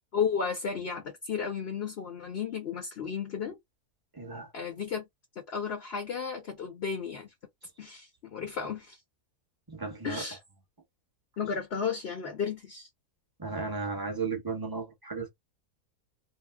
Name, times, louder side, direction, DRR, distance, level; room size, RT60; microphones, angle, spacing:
voice 1, 0.1-3.6 4.5-5.1 5.5-7.3 7.8-9.0 10.0-10.4 11.4-12.9, left 6 dB, 50° left, 0.9 m, -33 dB
voice 2, 4.1-4.5 9.7-10.2 13.4-15.3, right 4 dB, 20° right, 0.8 m, -34 dB
2.7 x 2.1 x 3.4 m
omnidirectional pair, 1.7 m